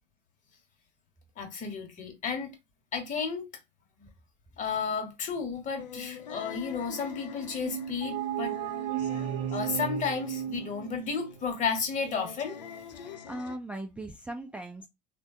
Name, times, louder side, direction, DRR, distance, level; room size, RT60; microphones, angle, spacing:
voice 1, 1.4-2.5 2.9-3.5 4.0-4.1 4.6-8.5 9.5-12.6, left 5 dB, 35° left, 1.1 m, -32 dB
sound 1, 5.8-13.6, left 7 dB, 85° left, 0.4 m, -45 dB
sound 2, 7.6-11.4, right 10 dB, 60° right, 0.7 m, -34 dB
voice 2, 13.0-14.9, right 1 dB, 5° right, 0.4 m, -39 dB
3.4 x 2.2 x 2.6 m
hypercardioid pair, 80°, 21 cm